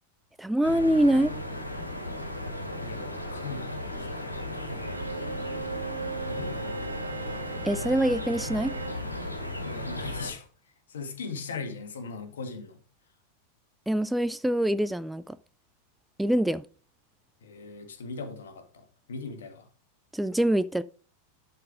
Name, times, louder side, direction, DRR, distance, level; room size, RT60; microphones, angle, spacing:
voice 1, 0.4-1.3 7.6-8.7 13.9-15.4 16.2-16.6 20.1-20.8, right 1 dB, 5° right, 0.3 m, -24 dB
sound 1, 0.6-10.3, left 1 dB, 85° left, 2.1 m, -35 dB
voice 2, 2.8-4.1 4.5-4.9 6.2-6.7 9.6-10.5 10.9-12.8 17.4-19.7, left 4 dB, 65° left, 1.7 m, -39 dB
Bowed string instrument, 4.8-9.1, right 5 dB, 75° right, 1.2 m, -38 dB
11.5 x 4.4 x 4.9 m
figure-of-eight pair, 90°, 0 cm